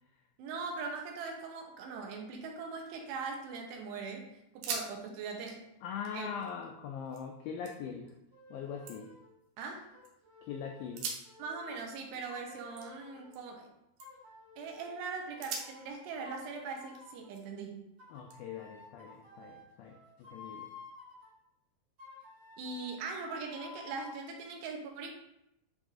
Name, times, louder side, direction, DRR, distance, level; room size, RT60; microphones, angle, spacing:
voice 1, 0.4-4.3 4.5-5.6 6.1-6.3 9.6-9.9 11.4-13.7 14.6-17.9 22.6-25.1, right 4 dB, 90° right, 2 dB, 3.0 m, -41 dB
sound 1, 2.9-3.6 4.0-4.1 4.5-4.9 5.2-7.2 7.6-8.2 8.6-10.1 10.8-13.7 14.0-14.4 14.8-14.9 15.4-17.7 18.3-19.5, right 5 dB, 75° right, 2.5 m, -45 dB
voice 2, 5.8-8.1 8.5-9.1 10.4-11.1 18.1-20.7, left 7 dB, 85° left, 2 dB, 2.0 m, -42 dB
sound 2, 8.3-9.3 9.9-13.3 14.0-15.9 16.2-17.3 18.0-21.3 22.0-24.2, left 4 dB, 50° right, 1.7 m, -53 dB
9.8 x 3.9 x 2.5 m, 0.82 s
omnidirectional pair, 4.8 m